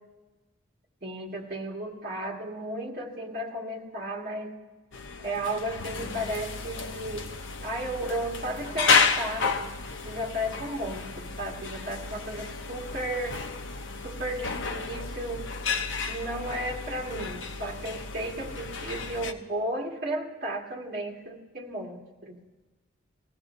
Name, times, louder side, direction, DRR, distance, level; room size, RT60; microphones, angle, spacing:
voice 1, 1.0-4.5 5.2-7.3 7.6-9.8 10.0-13.4 14.0-15.5 16.1-22.4, right 1 dB, 50° right, -2 dB, 1.9 m, -34 dB
sound 1, 4.9-19.3, left 5 dB, 85° left, 0.7 m, -31 dB
20.0 x 15.0 x 2.6 m, 1.2 s
head